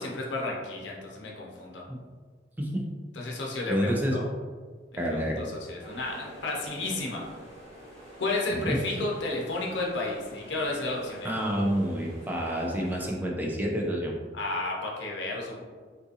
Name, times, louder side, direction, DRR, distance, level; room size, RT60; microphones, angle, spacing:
voice 1, 0.0-1.8 3.1-4.2 5.1-7.2 8.2-11.3 14.3-15.6, left 2 dB, 80° left, -2 dB, 0.6 m, -32 dB
voice 2, 3.7-4.2 5.0-5.5 8.5-8.8 11.2-14.1, equal, 10° right, -1 dB, 0.4 m, -28 dB
sound 1, 5.8-13.1, right 1 dB, 40° right, 1.1 m, -48 dB
3.8 x 2.5 x 2.7 m, 1.5 s
head